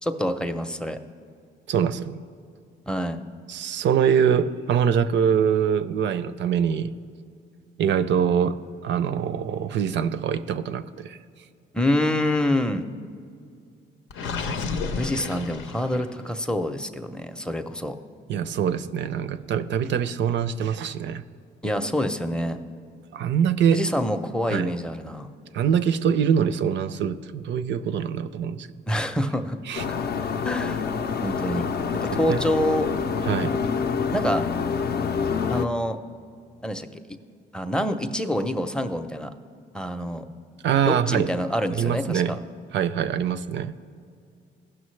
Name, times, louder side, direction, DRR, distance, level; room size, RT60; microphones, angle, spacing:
voice 1, 0.0-1.0 2.9-3.2 11.7-12.9 15.0-18.0 21.6-22.6 23.7-25.3 28.9-29.6 29.9-30.0 30.4-30.9 31.2-31.7 32.0-32.9 34.1-34.4 35.5-36.0 36.6-36.9 37.5-39.3 39.7-40.3 40.9-42.4, left 1 dB, 5° left, 7 dB, 0.5 m, -26 dB
voice 2, 1.7-2.2 3.5-6.9 7.8-11.2 18.3-21.2 23.1-23.8 24.5-24.7 25.5-28.7 29.7-29.8 32.3-32.4 33.2-33.6 40.6-41.3 41.8-42.4 42.7-43.7, right 8 dB, 65° right, 13 dB, 0.5 m, -24 dB
Gurgling, 14.1-16.3, left 4 dB, 85° left, 0.7 m, -31 dB
sound 1, 29.7-35.7, left 6 dB, 50° left, 0.5 m, -27 dB
16.0 x 6.1 x 3.2 m, 2.3 s
cardioid pair, 90°, 20 cm